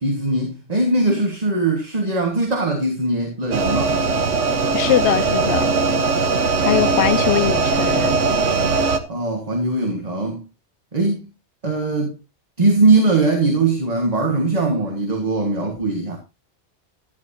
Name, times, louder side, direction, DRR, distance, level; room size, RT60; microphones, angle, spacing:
voice 1, 0.0-4.0 9.1-10.4 10.9-11.3 11.6-12.2 12.6-16.2, right 2 dB, 35° right, 1.6 m, -20 dB
sound 1, 3.5-9.0, right 4 dB, 80° right, 1.4 m, -20 dB
voice 2, 4.7-5.7 6.6-8.1, left 11 dB, 70° left, 0.9 m, -21 dB
11.5 x 10.5 x 2.7 m
omnidirectional pair, 1.2 m